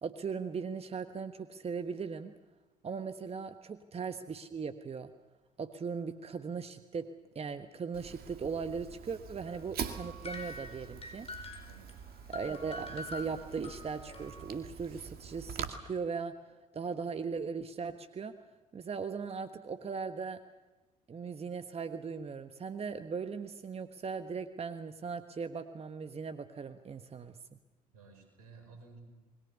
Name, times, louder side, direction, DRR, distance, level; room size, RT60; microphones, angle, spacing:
voice 1, 0.0-2.3 2.8-5.1 5.6-7.1 7.3-11.3 12.3-16.3 16.7-18.4 18.7-20.4 21.1-27.6, right 5 dB, 30° right, 9 dB, 1.3 m, -38 dB
Fire, 7.9-15.7, right 8 dB, 55° right, 2.1 m, -45 dB
sound 1, 9.5-14.6, left 2 dB, 30° left, 4.9 m, -46 dB
voice 2, 27.9-29.0, right 4 dB, 80° right, 5 dB, 5.2 m, -55 dB
28.0 x 21.0 x 6.9 m, 1.2 s
hypercardioid pair, 55°, 19 cm